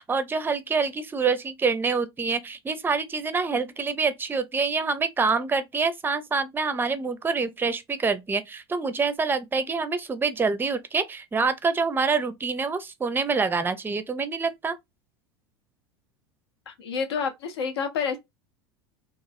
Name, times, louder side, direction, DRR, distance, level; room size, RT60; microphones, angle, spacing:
voice 1, 0.0-14.8, right 4 dB, 15° right, 0.5 m, -26 dB
voice 2, 16.7-18.2, left 6 dB, 75° left, 0.7 m, -29 dB
3.0 x 2.4 x 2.6 m
figure-of-eight pair, 80°, 14 cm